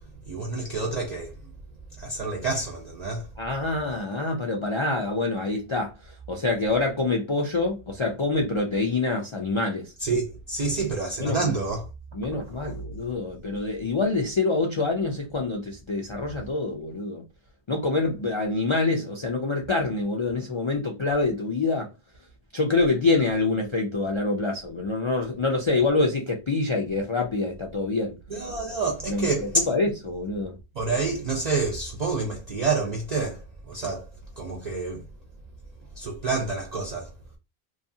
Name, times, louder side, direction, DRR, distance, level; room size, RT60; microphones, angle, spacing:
voice 1, 0.3-1.5 2.0-3.3 10.0-11.9 28.3-29.7 30.8-33.4 33.7-34.1 34.4-35.0 36.0-37.1, right 3 dB, 50° right, 0.5 m, -28 dB
voice 2, 3.4-9.9 11.2-11.4 12.1-17.2 17.7-21.9 22.5-28.1 29.1-30.6, left 3 dB, 50° left, 0.3 m, -26 dB
2.6 x 2.3 x 2.6 m
omnidirectional pair, 1.1 m